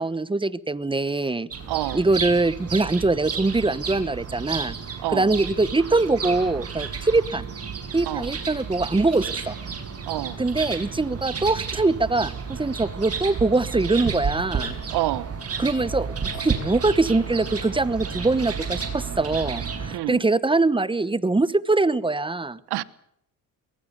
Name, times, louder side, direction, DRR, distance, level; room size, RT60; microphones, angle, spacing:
voice 1, 0.0-1.5 1.9-4.8 5.1-7.4 7.9-9.5 10.4-14.7 15.6-22.6, right 3 dB, 15° right, 1.0 m, -23 dB
sound 1, 1.5-20.0, right 6 dB, 35° right, 6.9 m, -32 dB
voice 2, 1.7-2.0 5.0-5.3 8.0-8.3 10.1-10.4 14.9-15.3 19.9-20.2 22.7-22.8, right 17 dB, 75° right, 1.3 m, -27 dB
23.0 x 21.5 x 6.8 m
cardioid pair, 105°, 40 cm